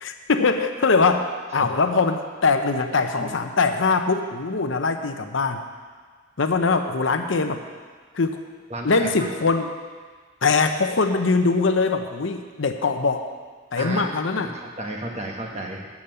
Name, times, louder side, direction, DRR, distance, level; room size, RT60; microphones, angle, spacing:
voice 1, 0.0-5.6 6.4-7.6 8.1-8.4 8.8-9.7 10.4-13.3 13.7-14.5, left 4 dB, 70° left, 7 dB, 0.7 m, -22 dB
voice 2, 2.8-3.3 8.7-9.3 13.7-15.9, right 1 dB, 35° right, 1 dB, 1.3 m, -33 dB
8.4 x 7.2 x 7.8 m, 1.5 s
head